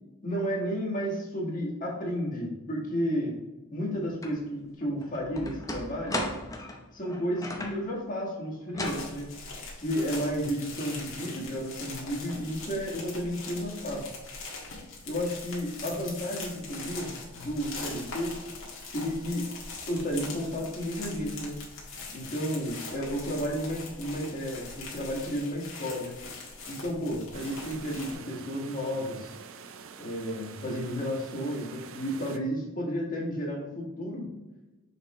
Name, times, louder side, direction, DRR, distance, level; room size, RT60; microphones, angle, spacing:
voice 1, 0.2-3.4 3.7-6.2 6.9-9.3 9.8-14.1 15.1-18.4 18.9-19.5 19.9-21.6 22.1-26.1 26.7-29.3 30.0-34.3, equal, 40° left, -4 dB, 1.8 m, -32 dB
sound 1, 4.2-4.4 4.8-7.9 8.7-9.1, left 1 dB, 15° left, 0.7 m, -35 dB
sound 2, 8.8-28.1, left 3 dB, 65° left, 1.7 m, -42 dB
sound 3, 27.3-32.4, right 6 dB, 65° right, 0.5 m, -46 dB
6.4 x 4.7 x 3.1 m, 1.1 s
head